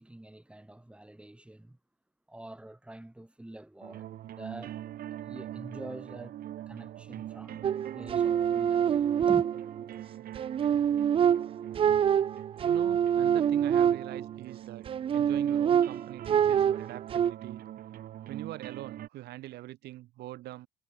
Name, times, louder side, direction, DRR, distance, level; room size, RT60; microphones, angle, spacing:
voice 1, 0.0-1.8 2.3-4.1 4.3-4.8 5.1-6.4 6.7-9.5, right 1 dB, 5° right, 6.1 m, -46 dB
sound 1, 3.8-19.1, right 12 dB, 60° right, 1.3 m, -43 dB
sound 2, 7.6-9.9 10.4-14.4 14.9-17.3, right 9 dB, 35° right, 0.4 m, -26 dB
voice 2, 12.6-14.9 15.1-17.6 18.3-20.7, right 16 dB, 75° right, 1.8 m, -43 dB
cardioid pair, 110°, 17 cm